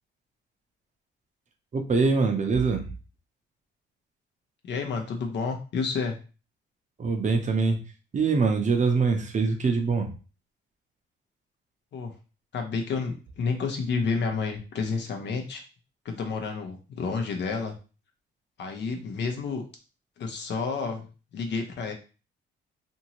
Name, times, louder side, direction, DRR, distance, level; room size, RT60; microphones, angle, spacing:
voice 1, 1.7-2.9 7.0-7.8 8.1-10.1, right 4 dB, 40° right, 4 dB, 0.7 m, -24 dB
voice 2, 4.6-6.2 11.9-12.1 12.5-15.6 16.0-17.7 18.6-19.6 20.2-21.1 21.3-21.9, left 5 dB, 65° left, 3 dB, 0.8 m, -30 dB
2.7 x 2.7 x 2.9 m, 0.34 s
cardioid pair, 90°, 20 cm